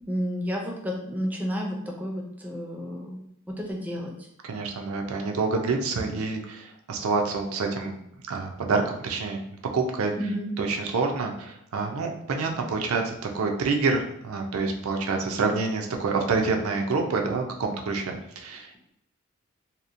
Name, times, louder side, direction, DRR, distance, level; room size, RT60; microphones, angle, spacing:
voice 1, 0.0-4.1 10.2-10.5, equal, 10° right, -1 dB, 0.3 m, -31 dB
voice 2, 4.4-8.0 8.3-9.4 9.7-10.1 10.6-18.9, right 4 dB, 80° right, 3 dB, 0.4 m, -27 dB
2.8 x 2.0 x 2.5 m, 0.76 s
head